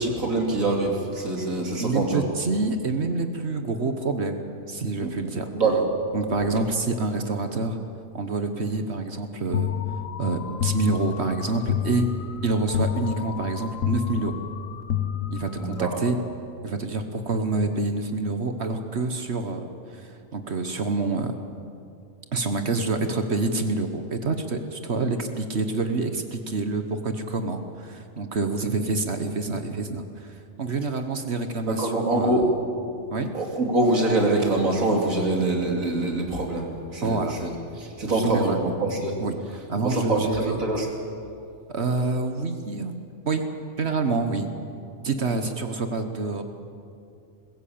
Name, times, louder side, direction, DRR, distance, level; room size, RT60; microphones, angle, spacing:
voice 1, 0.0-2.2 5.0-5.1 5.5-5.9 15.6-15.9 31.7-32.5 33.3-37.5 37.8-39.2 39.8-40.9, right 2 dB, 85° right, 1 dB, 3.2 m, -24 dB
voice 2, 1.8-5.5 6.1-7.8 8.1-9.7 10.2-12.1 12.4-14.3 15.3-16.2 16.6-21.3 22.3-32.4 33.1-33.3 37.0-37.4 38.0-38.7 39.2-39.4 39.7-40.6 41.7-42.9 43.2-43.4 43.8-44.5 45.0-46.4, right 3 dB, 55° right, 7 dB, 1.4 m, -27 dB
sound 1, 9.5-15.9, left 9 dB, 80° left, 1.3 m, -29 dB
21.0 x 15.0 x 8.7 m, 2.5 s
omnidirectional pair, 1.4 m